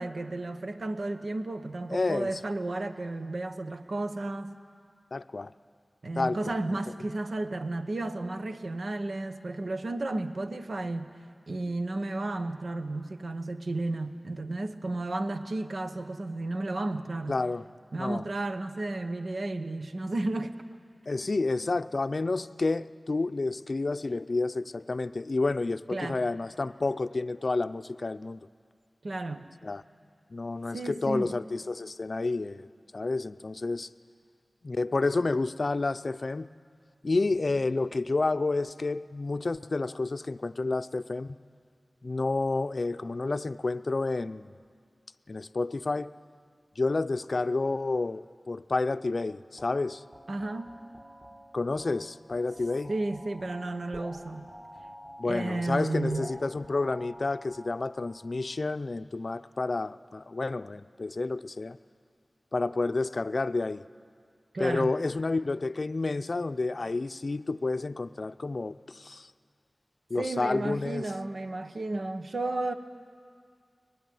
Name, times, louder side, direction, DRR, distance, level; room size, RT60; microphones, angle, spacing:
voice 1, 0.0-4.6 6.0-11.1 11.5-17.4 17.9-20.6 25.9-26.3 29.0-29.4 30.7-31.3 50.3-50.7 52.9-54.5 55.2-56.3 64.5-65.0 70.2-72.7, right 2 dB, 70° right, 8 dB, 1.1 m, -33 dB
voice 2, 1.9-2.3 5.1-5.5 6.2-6.5 17.3-17.6 18.0-18.2 21.1-28.4 29.6-29.8 30.3-32.7 32.9-33.9 34.6-36.5 37.0-41.4 42.0-44.6 45.3-46.1 46.8-50.0 51.5-52.9 55.2-61.8 62.5-63.8 64.6-69.3 70.1-71.0, left 3 dB, 55° left, 12 dB, 0.5 m, -30 dB
sound 1, 49.6-58.3, equal, 20° right, 2.0 m, -48 dB
23.5 x 20.0 x 9.4 m, 2.1 s
wide cardioid pair, 65°, 0 cm